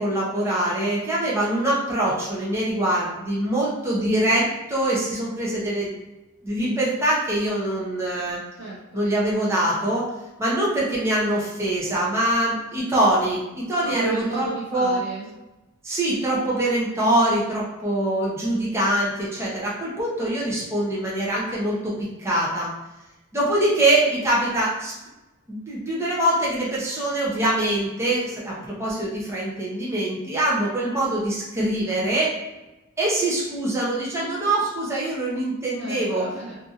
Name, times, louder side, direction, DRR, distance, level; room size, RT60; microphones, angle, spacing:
voice 1, 0.0-5.9 6.4-8.4 8.9-10.1 10.4-15.0 15.8-21.9 22.2-22.7 23.3-24.9 25.5-32.3 33.0-36.2, right 1 dB, 15° right, -6 dB, 0.6 m, -24 dB
voice 2, 8.6-9.1 13.8-15.3 35.8-36.6, right 2 dB, 55° right, -6 dB, 0.5 m, -33 dB
2.7 x 2.5 x 2.4 m, 1.0 s
head